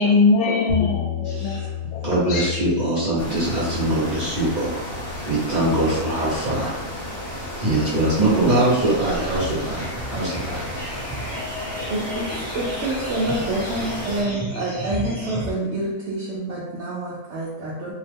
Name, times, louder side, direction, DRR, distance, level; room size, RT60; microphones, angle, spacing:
voice 1, 0.0-2.5, left 4 dB, 85° left, -1 dB, 1.1 m, -21 dB
sound 1, 0.7-10.7, left 8 dB, 60° left, 0.9 m, -35 dB
voice 2, 1.2-1.7 2.0-4.8 5.3-6.8 7.6-10.6, right 1 dB, 35° right, -10 dB, 0.9 m, -22 dB
sound 2, 3.2-14.2, equal, 40° left, 1.1 m, -33 dB
sound 3, 8.3-15.5, equal, 15° left, 0.8 m, -34 dB
voice 3, 11.9-17.9, right 1 dB, 70° right, -6 dB, 0.6 m, -27 dB
2.7 x 2.1 x 3.3 m, 1.1 s
omnidirectional pair, 1.7 m